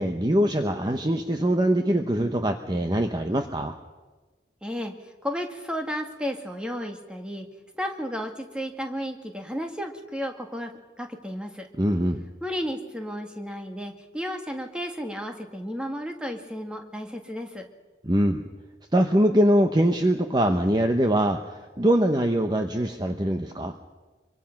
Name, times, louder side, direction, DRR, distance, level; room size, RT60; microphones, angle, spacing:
voice 1, 0.0-3.7 11.8-12.2 18.0-18.5 18.9-23.8, right 1 dB, 25° right, 6 dB, 0.9 m, -23 dB
voice 2, 4.6-7.5 7.8-10.7 11.0-11.7 12.4-17.7, equal, 5° right, 3 dB, 1.8 m, -33 dB
24.5 x 24.0 x 5.9 m, 1.2 s
head